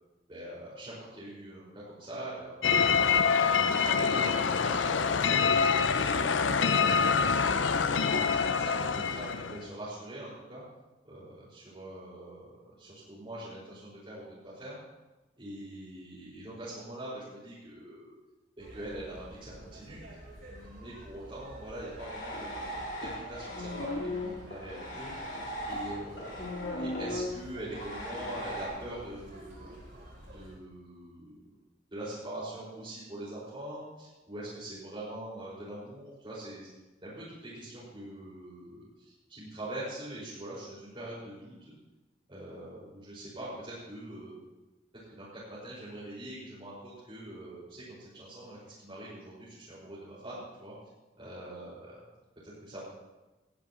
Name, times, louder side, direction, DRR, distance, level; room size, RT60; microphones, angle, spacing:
voice 1, 0.3-5.0 5.4-7.4 7.8-10.6 11.0-14.8 15.4-18.1 18.6-20.0 20.5-25.4 25.7-26.4 26.8-29.8 30.3-31.4 31.9-36.7 37.0-41.7 42.3-44.4 45.2-45.3 45.6-50.8 51.2-52.0 52.4-52.8, right 1 dB, 30° right, -11 dB, 5.4 m, -43 dB
sound 1, 2.6-9.7, left 6 dB, 85° left, 0.6 m, -26 dB
sound 2, 18.6-30.6, right 1 dB, 60° right, 6.3 m, -50 dB
sound 3, 22.0-28.7, left 1 dB, 70° left, 4.0 m, -37 dB
19.0 x 14.5 x 3.1 m, 1.1 s
head